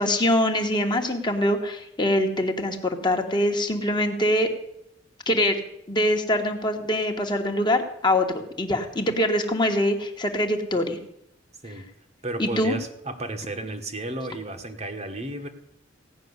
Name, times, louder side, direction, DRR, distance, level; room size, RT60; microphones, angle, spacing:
voice 1, 0.0-4.5 5.3-5.6 5.9-11.0 12.4-12.7, left 1 dB, 25° left, 4 dB, 1.3 m, -24 dB
voice 2, 12.2-15.5, right 2 dB, 35° right, 6 dB, 1.2 m, -33 dB
16.5 x 6.0 x 9.6 m, 0.78 s
head